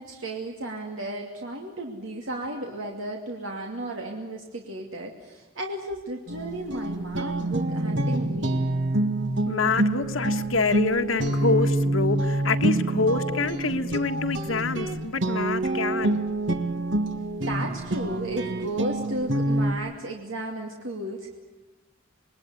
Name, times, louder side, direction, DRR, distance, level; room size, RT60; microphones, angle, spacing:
voice 1, 0.0-8.6 17.4-21.4, right 1 dB, 80° right, 1 dB, 2.7 m, -34 dB
sound 1, 6.3-19.7, right 1 dB, 65° right, 1.8 m, -27 dB
voice 2, 9.5-16.2, left 3 dB, 80° left, 6 dB, 1.6 m, -26 dB
27.5 x 21.5 x 9.7 m, 1.0 s
head